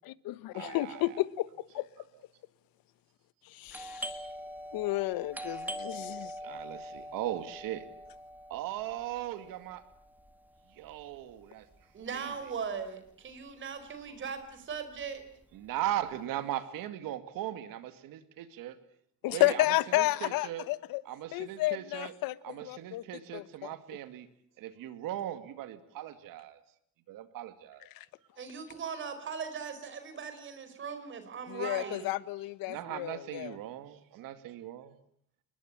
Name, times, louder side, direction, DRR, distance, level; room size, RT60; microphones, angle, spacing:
voice 1, 0.0-1.9 3.4-4.3 4.7-6.4 19.2-21.0 21.3-23.0 23.3-23.7 27.9-28.1 31.5-33.6, left 17 dB, 85° left, 1.2 m, -32 dB
voice 2, 0.5-1.0 6.4-7.9 8.5-9.8 10.7-11.7 12.1-12.3 15.5-18.8 19.3-19.6 20.0-20.7 21.1-22.1 22.4-24.3 24.6-26.6 27.1-27.9 32.7-34.9, right 13 dB, 75° right, 2.3 m, -38 dB
Doorbell, 3.7-13.1 13.3-13.4 14.1-14.4 14.7-16.1, equal, 5° right, 1.8 m, -44 dB
voice 3, 11.9-15.2 28.4-32.1, right 6 dB, 35° right, 4.6 m, -39 dB
28.5 x 21.0 x 8.8 m
cardioid pair, 175°, 34 cm